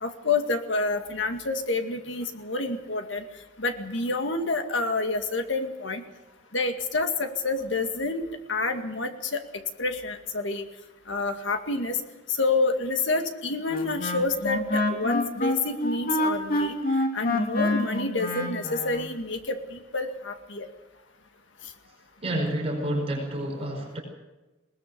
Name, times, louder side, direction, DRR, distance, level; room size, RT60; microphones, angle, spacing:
voice 1, 0.0-3.2 3.6-6.0 6.5-9.4 9.8-10.7 11.1-12.0 12.3-16.8 17.1-20.7, left 3 dB, 75° left, 6 dB, 2.1 m, -28 dB
Wind instrument woodwind instrument, 13.7-19.1, left 2 dB, 50° left, 2.7 m, -27 dB
voice 2, 22.2-24.0, right 1 dB, 30° right, 0 dB, 5.4 m, -29 dB
20.5 x 19.5 x 6.8 m, 1.1 s
head